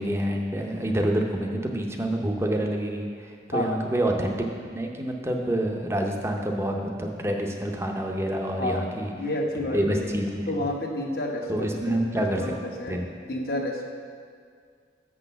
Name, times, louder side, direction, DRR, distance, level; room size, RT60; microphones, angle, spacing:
voice 1, 0.0-9.1 9.7-10.7 11.5-12.4 12.9-13.1, right 1 dB, 15° right, 2 dB, 0.6 m, -27 dB
voice 2, 8.6-10.1 10.5-13.0 13.3-13.8, left 1 dB, 55° left, 1 dB, 1.0 m, -30 dB
6.5 x 6.1 x 6.9 m, 2.1 s
head